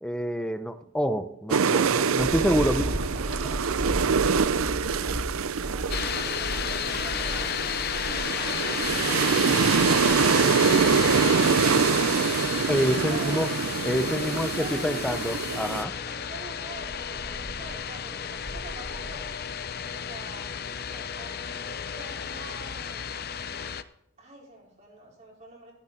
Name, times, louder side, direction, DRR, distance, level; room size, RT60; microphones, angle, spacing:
voice 1, 0.0-2.8 12.7-13.5 13.8-15.9, equal, 5° left, 8 dB, 0.8 m, -27 dB
sound 1, 1.5-15.8, right 6 dB, 90° right, 0.6 m, -25 dB
sound 2, 2.2-10.3 11.8-11.9 16.7-17.8 18.1-19.6, equal, 60° right, 2.7 m, -36 dB
voice 2, 2.5-5.3 5.6-7.6 13.0-13.5 14.3-15.3 16.0-19.4 19.9-20.5 20.9-23.3 24.2-25.7, right 1 dB, 35° right, -3 dB, 4.8 m, -45 dB
sound 3, 5.9-23.8, left 8 dB, 50° left, 0.6 m, -32 dB
14.0 x 14.0 x 3.8 m, 0.75 s
head